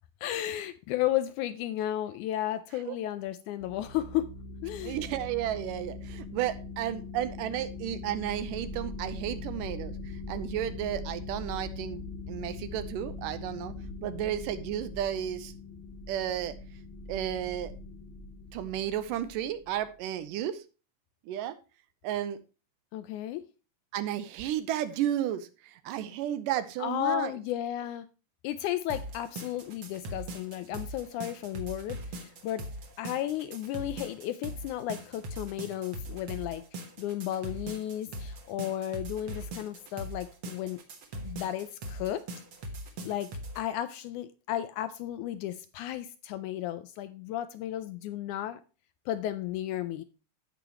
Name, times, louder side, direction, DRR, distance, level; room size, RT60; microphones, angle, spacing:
voice 1, 0.2-4.3 4.6-5.0 22.9-23.4 26.8-28.1 28.4-32.6 33.0-40.8 41.3-42.2 43.0-43.3 43.6-48.6 49.1-50.0, left 12 dB, 80° left, 12 dB, 1.8 m, -33 dB
sound 1, 3.6-19.9, left 3 dB, 5° right, 0.5 m, -41 dB
voice 2, 4.8-9.9 10.3-13.7 14.0-15.5 16.1-16.6 17.1-17.7 18.5-20.6 21.3-21.6 22.0-22.4 23.9-27.3, right 11 dB, 85° right, 13 dB, 2.3 m, -33 dB
sound 2, 28.9-43.6, right 1 dB, 55° right, 1.5 m, -40 dB
15.5 x 5.1 x 2.9 m, 0.32 s
omnidirectional pair, 3.8 m